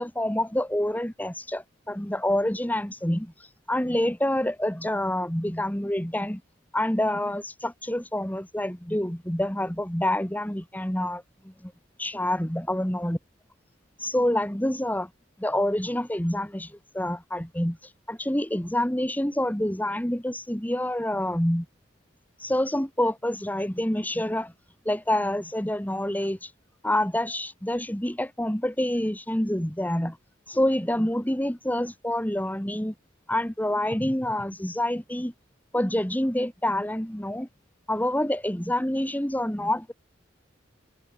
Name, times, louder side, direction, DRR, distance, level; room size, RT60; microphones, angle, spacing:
voice 1, 0.0-3.3 3.7-6.4 6.7-11.7 12.0-13.2 14.0-15.1 15.4-17.8 18.1-21.7 22.4-24.5 24.9-26.5 26.8-30.2 30.5-32.9 33.3-35.3 35.7-37.5 37.9-39.9, left 1 dB, 10° left, 2.2 m, -27 dB
head